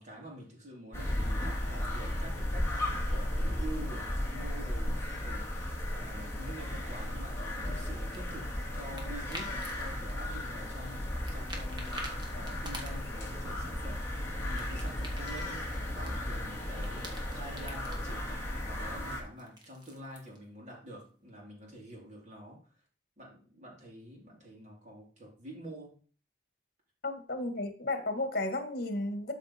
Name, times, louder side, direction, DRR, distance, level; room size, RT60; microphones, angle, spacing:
voice 1, 0.0-14.1 14.4-22.6 23.2-26.0, right 1 dB, 40° right, -2 dB, 3.6 m, -47 dB
sound 1, 0.9-19.2, left 1 dB, 15° left, 2.3 m, -35 dB
sound 2, 8.1-9.8 10.1-11.0 11.2-13.3 13.7-16.5 16.7-18.0 19.1-20.4, right 1 dB, 25° right, 1.8 m, -47 dB
voice 2, 27.0-29.3, left 2 dB, 50° left, 6 dB, 1.7 m, -33 dB
12.5 x 5.2 x 4.4 m, 0.41 s
head